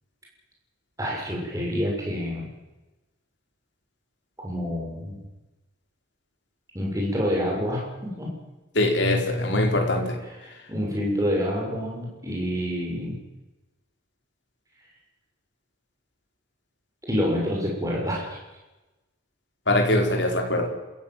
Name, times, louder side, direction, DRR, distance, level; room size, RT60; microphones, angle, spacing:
voice 1, 1.0-2.5 4.4-5.2 6.7-8.3 10.4-13.2 17.1-18.4, equal, 15° right, -2 dB, 6.9 m, -27 dB
voice 2, 8.7-10.2 19.7-20.7, left 1 dB, 60° left, 2 dB, 4.5 m, -22 dB
27.5 x 15.5 x 7.5 m, 1.1 s
head